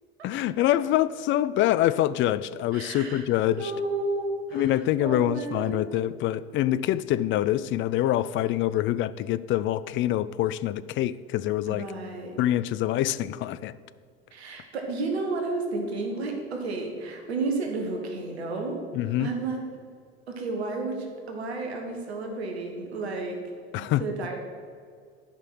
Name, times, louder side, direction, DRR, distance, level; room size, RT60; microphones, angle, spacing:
voice 1, 0.2-3.7 4.5-11.9 12.4-13.7 18.9-19.3 23.7-24.0, left 13 dB, 40° left, 0.4 m, -25 dB
voice 2, 2.7-6.1 11.7-12.4 14.3-18.8 19.2-19.6 20.3-23.4 23.8-24.4, right 3 dB, 80° right, 1.4 m, -32 dB
11.5 x 5.6 x 6.1 m
figure-of-eight pair, 65°, 32 cm